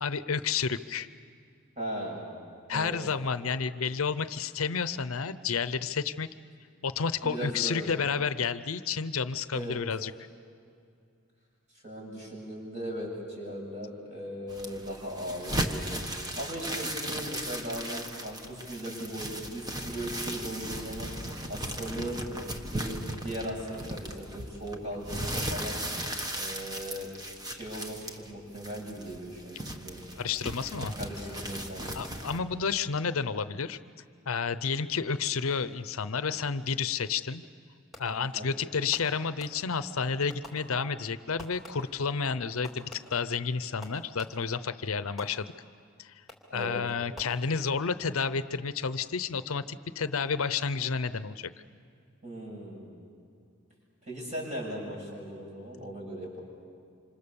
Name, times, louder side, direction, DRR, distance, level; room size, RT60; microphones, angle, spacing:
voice 1, 0.0-1.1 2.7-6.3 6.8-10.1 30.2-30.9 31.9-33.8 34.3-37.4 38.0-45.5 46.0-46.1 46.5-51.5, left 5 dB, 75° left, 13 dB, 0.7 m, -31 dB
voice 2, 1.8-2.2 2.7-2.9 7.2-7.9 9.5-9.8 11.8-16.0 16.3-21.1 21.5-22.2 22.7-25.8 26.3-27.1 27.5-30.0 31.0-32.0 38.3-38.5 46.5-46.8 52.2-53.0 54.0-56.4, equal, 35° right, -1 dB, 7.4 m, -38 dB
sound 1, 14.5-32.4, right 1 dB, 20° right, 1.4 m, -37 dB
Fireworks, 37.9-38.4 38.9-39.9 40.3-41.1 41.4-42.1 42.6-44.6 45.2-45.8 46.3-46.7 47.1-47.9, left 1 dB, ahead, 2.8 m, -50 dB
27.0 x 26.5 x 7.1 m, 2.4 s
head